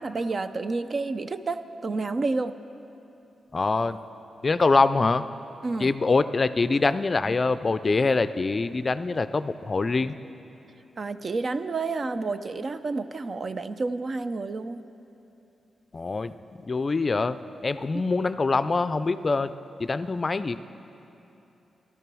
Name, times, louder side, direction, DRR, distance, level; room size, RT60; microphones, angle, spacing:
voice 1, 0.0-2.6 5.6-5.9 11.0-14.9, right 3 dB, 45° right, 11 dB, 0.5 m, -30 dB
voice 2, 3.5-4.0 4.4-5.3 5.8-10.2 15.9-19.5 19.8-20.6, left 3 dB, 40° left, 13 dB, 0.4 m, -24 dB
14.5 x 12.5 x 6.2 m, 3.0 s
cardioid pair, 80°, 0 cm